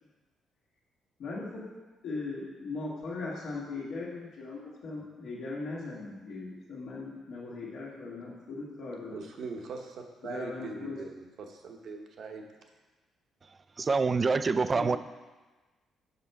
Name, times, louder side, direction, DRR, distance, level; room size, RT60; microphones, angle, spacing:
voice 1, 1.2-1.7 2.0-9.3 10.2-11.0 14.7-15.0, left 3 dB, 70° left, -5 dB, 1.6 m, -39 dB
voice 2, 9.1-12.5, right 4 dB, 65° right, 3 dB, 1.0 m, -41 dB
voice 3, 13.8-15.0, right 4 dB, 35° right, 13 dB, 0.3 m, -26 dB
6.7 x 5.6 x 4.6 m, 1.3 s
cardioid pair, 90°, 0 cm